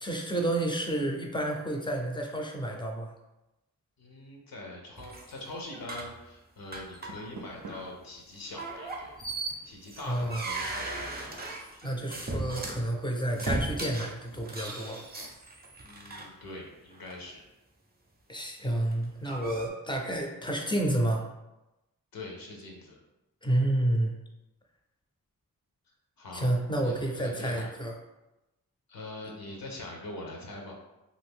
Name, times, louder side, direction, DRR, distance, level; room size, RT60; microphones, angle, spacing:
voice 1, 0.0-3.1 10.1-10.4 11.8-15.0 18.3-21.3 23.4-24.1 26.3-27.9, right 1 dB, 15° left, 1 dB, 0.5 m, -30 dB
voice 2, 4.0-9.1 9.6-11.3 15.8-17.4 22.1-23.0 26.2-26.5 26.8-27.7 28.9-30.8, left 2 dB, 75° left, 0 dB, 0.7 m, -43 dB
sound 1, 5.0-6.2 6.7-7.3 7.6-7.9 8.6-12.8 13.4-16.3 16.9-17.2 18.8-19.7, right 2 dB, 25° right, 0.6 m, -37 dB
Door, 6.8-8.0, right 3 dB, 80° right, 0.5 m, -47 dB
2.6 x 2.5 x 3.5 m, 0.98 s
wide cardioid pair, 65°, 35 cm